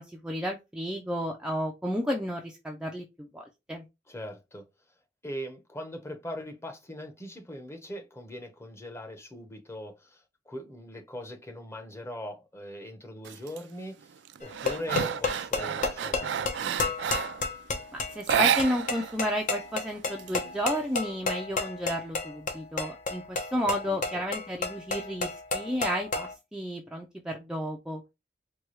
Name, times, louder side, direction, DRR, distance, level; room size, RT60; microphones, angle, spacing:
voice 1, 0.0-3.8 17.9-28.0, equal, 5° right, 0.5 m, -32 dB
voice 2, 4.1-4.7 5.2-14.1 14.4-16.9 23.6-24.2, equal, 15° left, 0.9 m, -41 dB
sound 1, 13.2-13.6 14.0-17.5 18.2-19.2 19.4-19.5 19.9-20.8, right 8 dB, 75° right, 0.3 m, -30 dB
sound 2, 14.4-26.3, left 3 dB, 45° left, 0.8 m, -32 dB
4.6 x 2.3 x 3.1 m
head